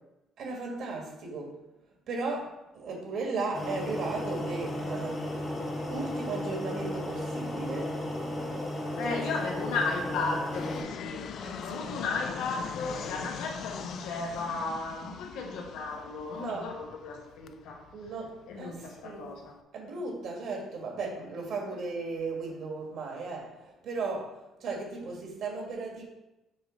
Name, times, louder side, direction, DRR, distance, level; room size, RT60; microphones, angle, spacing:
voice 1, 0.4-1.6 2.1-5.2 5.9-8.0 8.9-9.2 11.4-11.7 16.3-16.7 17.9-18.8 19.0-19.3 19.7-26.0, right 3 dB, 55° right, 0 dB, 1.6 m, -36 dB
sound 1, 3.5-10.8, left 1 dB, 20° left, 1.1 m, -34 dB
voice 2, 8.9-11.2 11.6-17.8 18.5-19.5, left 3 dB, 85° left, 1 dB, 1.3 m, -35 dB
Fixed-wing aircraft airplane, 10.5-19.6, left 8 dB, 50° left, 0.3 m, -42 dB
6.4 x 3.3 x 5.0 m, 0.94 s
cardioid pair, 155°, 0 cm